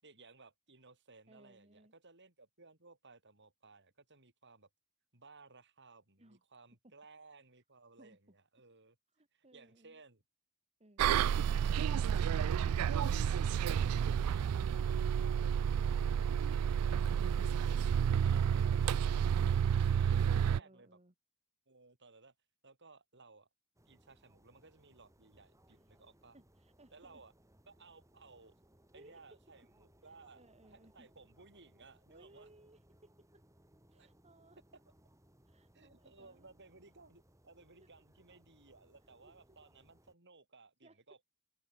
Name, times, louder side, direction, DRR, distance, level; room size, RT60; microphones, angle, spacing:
voice 1, 0.0-4.7 5.1-9.0 9.3-10.2 14.9-17.8 18.2-20.9 21.7-22.3 22.6-23.5 23.8-26.4 26.9-27.3 27.7-28.5 28.9-32.5 33.9-34.1 35.7-41.2, right 3 dB, 55° right, 6.7 m, -60 dB
voice 2, 1.3-1.9 6.2-6.4 6.8-6.9 8.0-8.2 9.1-10.0 10.8-11.2 20.3-21.1 25.7-26.0 26.3-27.2 28.9-29.3 30.1-31.1 32.1-33.4 33.9-34.6 35.5-36.5 37.8-37.9 39.2-39.6 40.8-41.0, right 1 dB, 30° right, 2.9 m, -63 dB
Bus, 11.0-20.6, right 8 dB, 80° right, 0.3 m, -30 dB
sound 1, 23.8-40.1, right 1 dB, 15° right, 4.6 m, -67 dB
open air
head